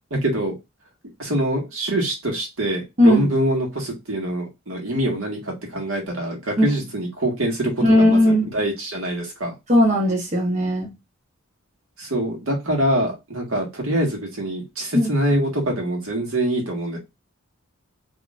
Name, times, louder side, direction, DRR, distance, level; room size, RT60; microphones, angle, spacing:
voice 1, 0.1-0.5 1.2-9.6 12.0-17.0, right 1 dB, 80° right, 1.6 m, -24 dB
voice 2, 7.8-8.5 9.7-10.9 14.9-15.1, left 1 dB, 35° right, 0.8 m, -17 dB
4.1 x 2.9 x 2.4 m
head